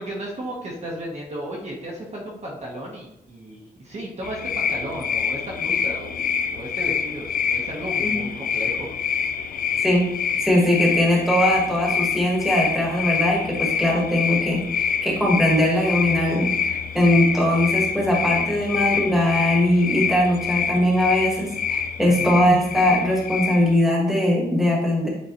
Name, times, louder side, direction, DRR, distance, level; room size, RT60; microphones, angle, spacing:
voice 1, 0.0-6.2 6.5-8.9 22.0-22.3, right 1 dB, 40° right, -3 dB, 1.1 m, -34 dB
sound 1, 4.2-23.8, left 7 dB, 55° left, 0.5 m, -26 dB
voice 2, 9.5-10.1 10.4-25.1, left 1 dB, ahead, -2 dB, 1.4 m, -21 dB
8.3 x 3.8 x 3.0 m, 0.81 s
wide cardioid pair, 155°, 18 cm